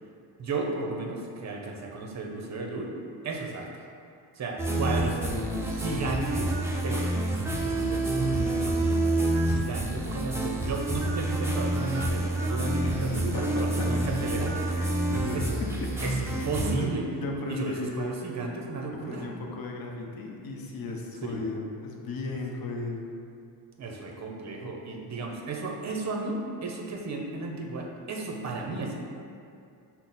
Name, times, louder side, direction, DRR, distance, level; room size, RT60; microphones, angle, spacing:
voice 1, 0.4-2.9 3.2-3.9 4.3-5.2 5.7-6.6 6.8-7.1 7.6-14.5 15.3-15.4 16.0-17.1 17.5-19.3 21.3-21.4 23.8-28.9, right 3 dB, 40° right, 0 dB, 0.7 m, -34 dB
sound 1, 4.6-16.8, right 2 dB, 5° right, 0.4 m, -28 dB
voice 2, 4.9-5.7 12.8-13.9 14.2-14.3 14.7-15.5 15.8-16.0 16.3-16.9 17.2-18.2 19.0-23.1, left 2 dB, 55° left, 1 dB, 0.7 m, -36 dB
5.7 x 2.1 x 4.0 m, 2.5 s
cardioid pair, 105°, 44 cm